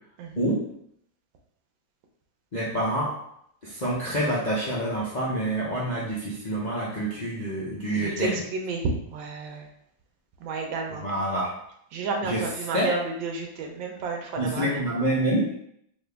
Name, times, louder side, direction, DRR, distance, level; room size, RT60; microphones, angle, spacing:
voice 1, 2.5-3.2 3.6-8.4 10.9-11.6 12.2-12.5 12.7-13.0 14.4-15.5, right 1 dB, 50° left, -7 dB, 0.5 m, -27 dB
voice 2, 7.9-9.7 10.4-11.0 11.9-14.7, right 3 dB, 85° right, 2 dB, 1.5 m, -31 dB
4.2 x 2.7 x 3.4 m, 0.71 s
omnidirectional pair, 2.1 m